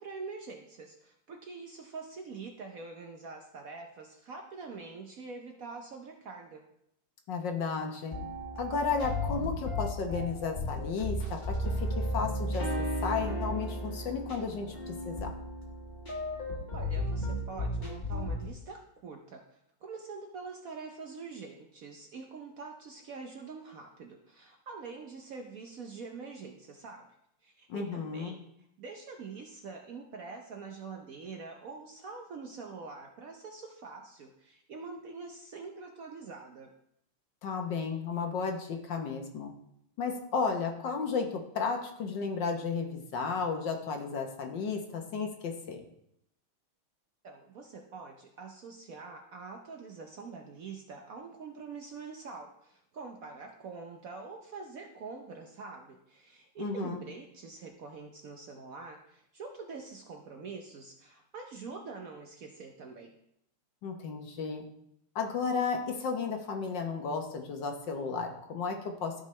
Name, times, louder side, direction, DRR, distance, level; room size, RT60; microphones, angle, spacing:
voice 1, 0.0-6.6 16.7-27.1 27.4-28.4 28.8-36.7 47.2-63.1, right 4 dB, 70° right, 3 dB, 0.8 m, -45 dB
voice 2, 7.3-8.1 8.6-15.3 27.7-28.4 37.4-39.5 40.0-45.8 56.6-57.0 63.8-64.6 65.1-69.2, left 5 dB, 60° left, 4 dB, 1.5 m, -33 dB
sound 1, 8.1-18.5, left 1 dB, 25° left, 1.3 m, -34 dB
13.5 x 5.2 x 3.2 m, 0.75 s
omnidirectional pair, 2.4 m